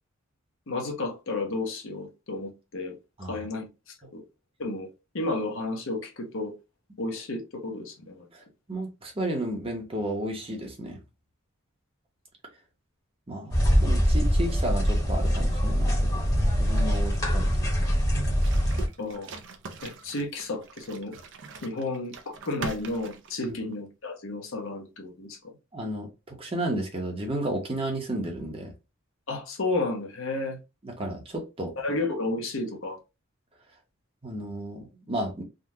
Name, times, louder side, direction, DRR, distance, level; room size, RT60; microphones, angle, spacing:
voice 1, 0.7-3.0 3.2-3.7 4.1-4.2 4.6-6.5 7.0-8.3 19.0-19.3 19.8-21.2 21.6-25.4 29.3-30.6 31.8-33.0, left 2 dB, 65° left, 0.9 m, -32 dB
voice 2, 8.7-11.0 13.3-16.3 16.6-17.5 23.4-23.6 25.7-28.7 30.8-31.7 34.2-35.4, right 1 dB, 25° right, 0.9 m, -33 dB
sound 1, 13.5-18.9, equal, 20° left, 1.2 m, -23 dB
sound 2, 18.4-23.8, right 4 dB, 65° right, 0.6 m, -42 dB
3.7 x 2.3 x 2.8 m
head